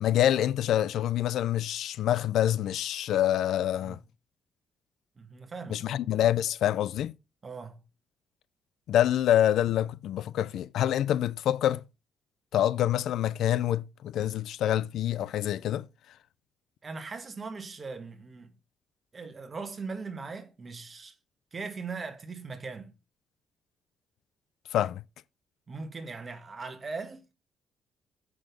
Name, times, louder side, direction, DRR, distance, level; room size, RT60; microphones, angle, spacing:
voice 1, 0.0-4.0 5.7-7.1 8.9-11.8 12.5-15.9 24.7-25.0, left 11 dB, 75° left, 0.4 m, -26 dB
voice 2, 5.2-6.0 7.4-7.8 16.8-18.5 19.1-21.2 21.5-22.9 25.7-27.3, right 4 dB, 30° right, 1.5 m, -40 dB
7.7 x 6.2 x 5.1 m
cardioid pair, 145°, 0 cm